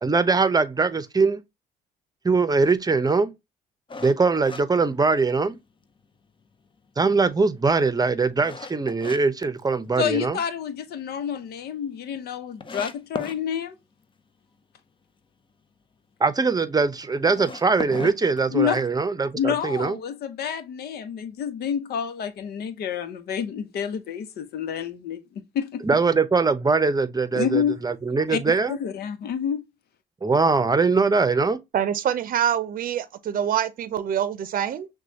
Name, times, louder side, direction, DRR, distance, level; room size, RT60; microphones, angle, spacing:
voice 1, 0.0-1.4 2.2-3.3 4.0-5.6 7.0-10.4 16.2-20.0 25.8-28.8 30.2-31.6, right 4 dB, 25° right, 0.7 m, -22 dB
sound 1, 3.9-5.6 6.0-6.1 6.7-9.2 9.6-10.3 10.7-10.8 11.2-11.3 11.4-11.5 12.1-12.2 12.6-13.4 17.2-19.0, left 4 dB, 30° left, 0.7 m, -37 dB
voice 2, 10.0-13.8 18.5-18.8 19.3-25.8 27.3-27.8 28.3-28.4 28.7-29.6, left 8 dB, 75° left, 0.8 m, -28 dB
voice 3, 31.7-34.9, right 9 dB, 60° right, 0.6 m, -25 dB
6.0 x 2.3 x 2.8 m
supercardioid pair, 65°, 17 cm